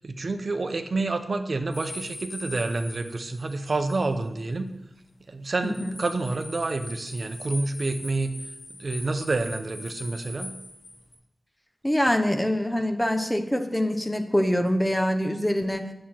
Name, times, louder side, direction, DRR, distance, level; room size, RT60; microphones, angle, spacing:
voice 1, 0.0-4.7 5.3-8.3 8.8-10.6 12.8-12.9, right 3 dB, 50° right, 8 dB, 0.7 m, -28 dB
sound 1, 1.7-4.1 4.4-4.5 5.4-11.1, left 2 dB, 70° left, 3.6 m, -41 dB
voice 2, 5.6-5.9 11.8-15.9, equal, 10° left, 6 dB, 0.9 m, -24 dB
9.2 x 7.6 x 4.4 m, 0.89 s
wide cardioid pair, 110°, 0 cm